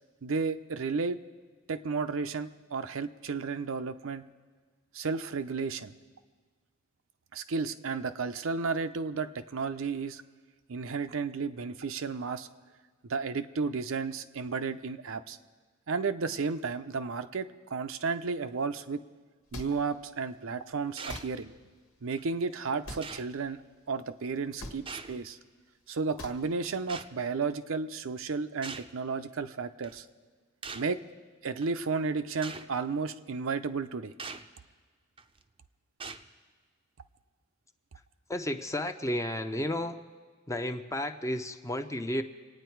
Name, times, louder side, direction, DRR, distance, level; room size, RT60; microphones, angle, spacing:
voice 1, 0.2-1.2 1.7-4.2 4.9-5.9 7.3-10.2 10.7-12.5 13.1-15.4 15.9-19.0 19.5-21.5 22.0-23.6 23.9-25.4 25.9-30.1 30.7-31.0 31.4-34.1, right 4 dB, 70° right, 9 dB, 0.6 m, -33 dB
sound 1, 19.5-19.7 21.1-21.3 22.8-23.1 24.6-24.8 26.2-26.4, left 1 dB, 85° left, 1.6 m, -40 dB
sound 2, 21.0-21.3 22.2-22.3 23.0-23.3 24.9-25.3 26.9-27.1 28.6-28.9 29.8-30.0 30.6-30.9 31.6-31.7 32.4-32.7 34.2-34.5 35.2-35.4 36.0-36.3, right 4 dB, 25° right, 0.6 m, -42 dB
voice 2, 38.3-40.0 40.5-42.2, left 1 dB, 15° left, 7 dB, 0.6 m, -32 dB
26.5 x 9.4 x 4.6 m, 1.5 s
head